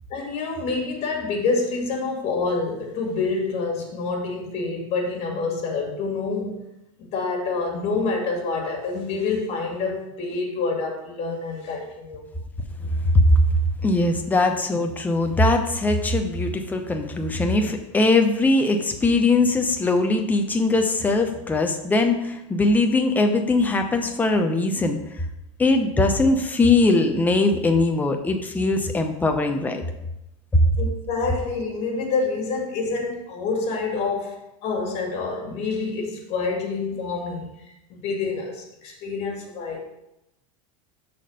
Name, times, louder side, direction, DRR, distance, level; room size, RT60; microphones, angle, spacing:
voice 1, 0.1-6.7 7.0-12.3 30.8-39.8, left 4 dB, 35° left, 1 dB, 2.2 m, -27 dB
voice 2, 12.8-13.1 13.8-25.3 25.6-29.8 30.5-30.6, left 2 dB, 10° left, 4 dB, 0.8 m, -21 dB
6.4 x 4.3 x 6.3 m, 0.88 s
supercardioid pair, 140°, 17 cm